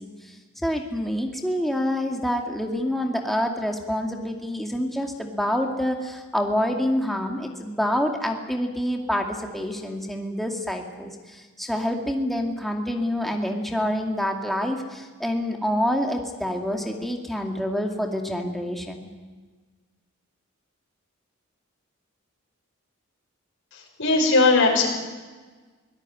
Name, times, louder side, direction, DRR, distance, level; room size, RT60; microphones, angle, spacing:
voice 1, 0.0-19.1, equal, ahead, 2 dB, 2.3 m, -27 dB
voice 2, 24.0-24.9, left 3 dB, 60° left, 0 dB, 6.2 m, -18 dB
24.0 x 18.0 x 9.7 m, 1.4 s
head